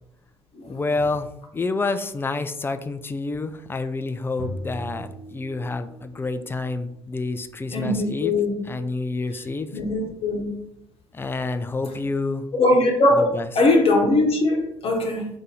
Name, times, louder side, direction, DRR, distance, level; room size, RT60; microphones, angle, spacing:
voice 1, 0.7-1.3 1.5-8.3 8.6-9.7 11.1-12.5 13.1-13.5, left 3 dB, 15° left, 9 dB, 0.3 m, -28 dB
sound 1, 4.4-6.2, left 1 dB, 70° left, 1.0 m, -37 dB
voice 2, 7.7-8.5 9.7-10.4 12.5-13.3 13.6-15.3, left 2 dB, 45° left, 1 dB, 0.9 m, -20 dB
2.6 x 2.6 x 4.1 m, 0.77 s
figure-of-eight pair, 50°, 14 cm